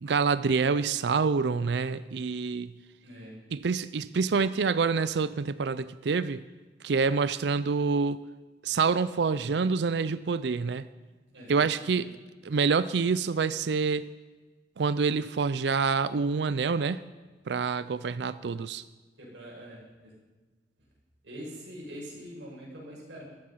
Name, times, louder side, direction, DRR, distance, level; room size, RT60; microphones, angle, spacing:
voice 1, 0.0-2.7 3.5-6.4 6.8-8.2 8.6-10.8 11.5-12.1 12.4-14.1 14.8-17.0 17.5-18.8, right 5 dB, 70° right, 15 dB, 0.4 m, -27 dB
voice 2, 3.0-3.3 11.3-12.0 17.8-17.9 19.2-20.1 21.2-23.2, equal, 90° right, -3 dB, 6.2 m, -44 dB
14.5 x 13.5 x 5.6 m, 1.3 s
head